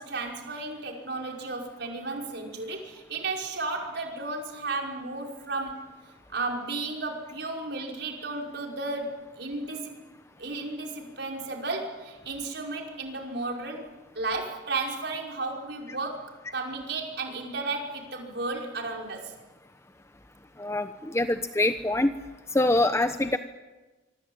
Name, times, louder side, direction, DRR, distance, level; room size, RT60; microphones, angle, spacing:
voice 1, 0.0-5.9 6.3-10.0 10.4-13.9 14.1-19.3, right 3 dB, 65° right, 1 dB, 5.4 m, -33 dB
voice 2, 20.6-22.1 22.5-23.4, left 2 dB, 15° left, 9 dB, 0.9 m, -24 dB
25.5 x 25.0 x 8.8 m, 1.2 s
head